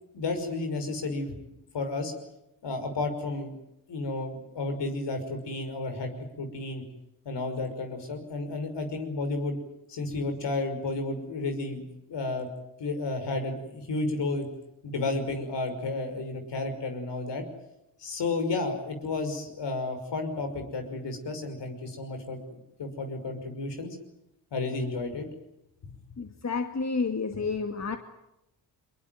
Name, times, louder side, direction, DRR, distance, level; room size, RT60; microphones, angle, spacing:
voice 1, 0.1-1.3 1.7-2.1 2.6-3.5 3.9-6.1 6.4-6.8 7.3-9.6 9.9-11.8 12.1-12.5 12.8-14.5 14.8-17.4 18.0-22.4 22.8-24.0 24.5-25.3 25.8-26.0, left 3 dB, 70° left, 6 dB, 5.8 m, -32 dB
voice 2, 26.2-28.0, left 4 dB, 35° left, 6 dB, 2.3 m, -30 dB
23.5 x 22.0 x 9.4 m, 0.85 s
supercardioid pair, 50°, 44 cm